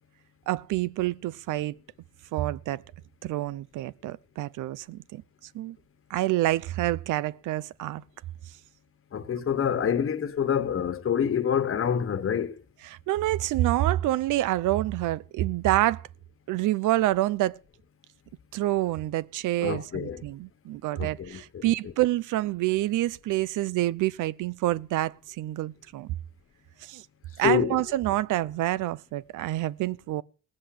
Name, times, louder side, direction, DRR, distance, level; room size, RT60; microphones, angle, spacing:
voice 1, 0.5-1.8 2.3-2.8 3.2-5.2 5.5-5.8 6.1-8.0 12.9-16.1 16.5-17.6 18.5-26.2 26.8-27.1 27.4-30.2, right 15 dB, 85° right, 0.7 m, -27 dB
voice 2, 9.1-12.6 19.6-20.2 20.9-21.7 27.4-27.8, left 8 dB, 45° left, 1.4 m, -27 dB
17.5 x 7.6 x 8.5 m
cardioid pair, 90°, 30 cm